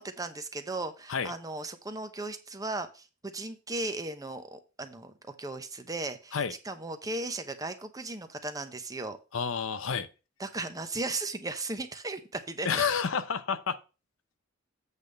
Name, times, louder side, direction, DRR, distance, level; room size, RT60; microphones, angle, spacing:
voice 1, 0.0-9.2 10.4-12.8, right 2 dB, 15° right, 0.8 m, -36 dB
voice 2, 9.3-10.1 12.6-13.8, left 6 dB, 75° left, 0.6 m, -29 dB
8.1 x 3.5 x 6.6 m
head